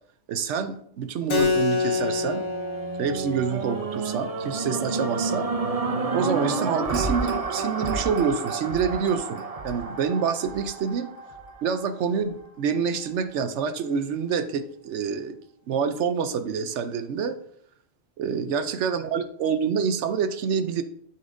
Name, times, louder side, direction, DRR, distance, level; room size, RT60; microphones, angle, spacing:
voice 1, 0.3-2.5 3.0-5.5 6.1-11.1 11.6-15.4 15.7-17.4 18.2-20.8, right 6 dB, 80° right, 10 dB, 0.9 m, -27 dB
Keyboard (musical), 1.3-6.4, left 4 dB, 90° left, 1.5 m, -29 dB
sound 1, 1.8-12.1 12.7-12.8, right 3 dB, 40° right, 0.7 m, -30 dB
11.5 x 5.5 x 2.6 m, 0.67 s
omnidirectional pair, 1.2 m